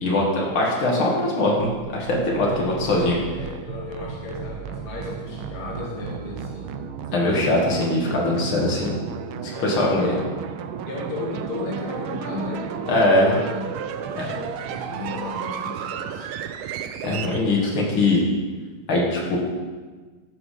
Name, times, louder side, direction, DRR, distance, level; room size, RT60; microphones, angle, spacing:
voice 1, 0.0-3.2 7.1-8.9 9.4-10.1 12.9-13.3 14.2-14.3 17.0-18.2 18.9-19.4, left 2 dB, 75° left, -3 dB, 2.8 m, -21 dB
sound 1, 1.5-17.4, right 8 dB, 80° right, 1.5 m, -33 dB
voice 2, 3.3-6.8 9.5-10.4 10.9-16.3, left 2 dB, 90° left, -3 dB, 2.7 m, -34 dB
13.5 x 7.5 x 5.1 m, 1.4 s
omnidirectional pair, 2.3 m